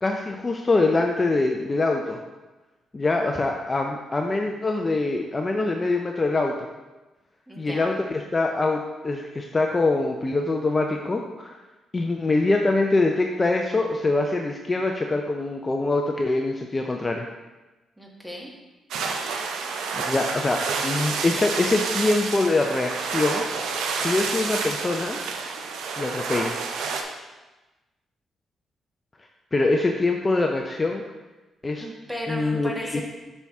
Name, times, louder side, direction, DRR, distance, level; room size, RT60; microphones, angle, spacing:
voice 1, 0.0-2.2 2.9-6.5 7.6-11.6 11.9-17.3 19.9-23.4 24.0-25.2 26.0-26.6 29.5-31.0 31.6-31.8 32.3-33.0, left 2 dB, 25° left, 2 dB, 0.6 m, -24 dB
voice 2, 7.5-7.9 18.0-18.5 31.8-33.0, equal, 5° right, -1 dB, 1.6 m, -35 dB
sound 1, 18.9-27.0, right 5 dB, 85° right, 0.7 m, -29 dB
7.1 x 5.5 x 3.5 m, 1.1 s
cardioid pair, 80°, 0 cm